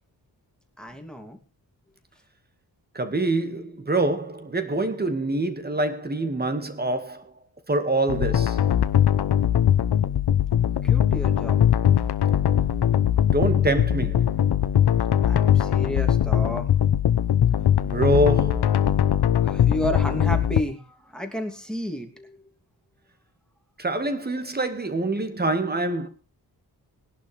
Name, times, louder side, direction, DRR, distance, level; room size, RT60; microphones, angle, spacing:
voice 1, 0.8-1.4 10.8-11.6 15.2-16.7 19.3-20.9 21.1-22.3, equal, ahead, 2.7 m, -31 dB
voice 2, 2.9-7.3 7.7-8.7 13.2-14.3 17.8-18.9 23.8-26.1, right 2 dB, 25° right, 2.0 m, -25 dB
sound 1, 8.1-20.6, left 10 dB, 85° left, 0.9 m, -21 dB
20.5 x 11.5 x 3.4 m
wide cardioid pair, 145°, 38 cm